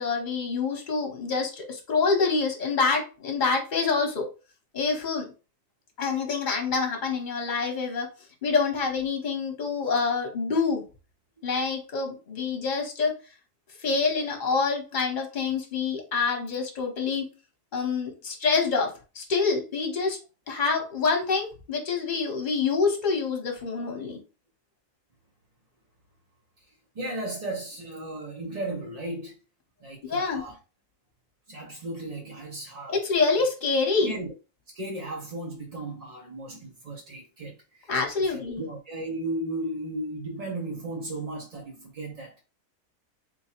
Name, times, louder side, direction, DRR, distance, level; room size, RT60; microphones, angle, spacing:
voice 1, 0.0-4.3 4.7-5.3 6.0-8.1 8.4-10.8 11.4-13.1 13.8-17.2 17.7-20.2 20.5-24.2 30.1-30.4 32.9-34.1 37.9-38.6, left 4 dB, 35° left, 1.1 m, -26 dB
voice 2, 26.9-29.4 29.8-30.6 31.5-33.1 34.0-34.3 34.7-37.9 38.2-42.4, right 1 dB, 50° right, 0.5 m, -35 dB
3.8 x 2.3 x 4.3 m
omnidirectional pair, 1.6 m